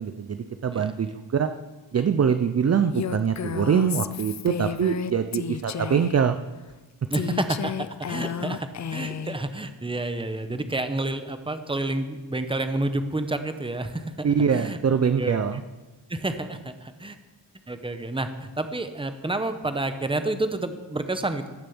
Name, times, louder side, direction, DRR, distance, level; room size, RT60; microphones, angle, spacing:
voice 1, 0.0-1.5 1.9-6.4 8.4-8.5 14.2-15.6, right 7 dB, 35° right, 9 dB, 0.5 m, -23 dB
Female speech woman speaking, 2.9-6.2 7.1-9.4, left 8 dB, 40° left, 0.4 m, -32 dB
voice 2, 7.1-7.7 8.1-14.1 14.5-14.8 15.2-15.4 16.1-17.2 17.7-21.5, right 2 dB, 10° right, 8 dB, 0.8 m, -29 dB
16.5 x 6.9 x 7.0 m, 1.2 s
wide cardioid pair, 155°, 45 cm